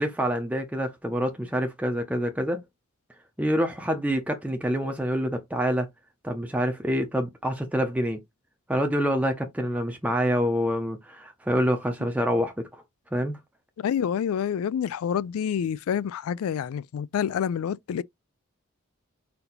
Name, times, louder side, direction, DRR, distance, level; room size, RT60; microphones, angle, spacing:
voice 1, 0.0-2.6 3.4-5.9 6.2-8.2 8.7-12.8 13.1-13.4, equal, 5° right, 0.6 m, -26 dB
voice 2, 13.8-18.0, left 8 dB, 75° left, 0.3 m, -27 dB
4.3 x 2.7 x 3.9 m
head